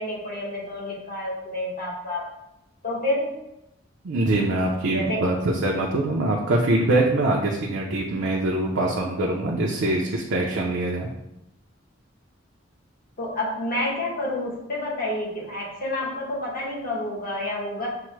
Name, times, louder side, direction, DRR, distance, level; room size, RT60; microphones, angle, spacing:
voice 1, 0.0-2.2 2.8-3.4 4.9-5.3 13.2-17.9, left 1 dB, 50° left, -4 dB, 1.1 m, -29 dB
voice 2, 4.0-11.1, right 2 dB, 70° right, -2 dB, 0.5 m, -23 dB
5.7 x 2.0 x 3.1 m, 0.87 s
head